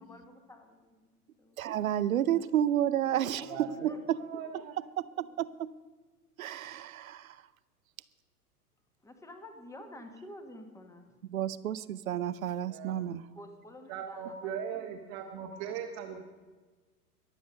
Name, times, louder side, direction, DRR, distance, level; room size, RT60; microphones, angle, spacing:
voice 1, 0.1-1.6 2.4-2.5 3.4-4.0 9.0-11.2 13.3-16.2, left 1 dB, 5° left, 1.5 m, -50 dB
voice 2, 1.6-4.2 4.5-4.6 5.0-5.7 6.4-7.4 11.3-13.2, right 11 dB, 60° right, 0.8 m, -31 dB
voice 3, 3.5-3.9 4.2-4.7 12.6-12.9 13.9-16.2, right 8 dB, 40° right, 1.4 m, -39 dB
22.0 x 7.9 x 5.3 m
figure-of-eight pair, 95°, 46 cm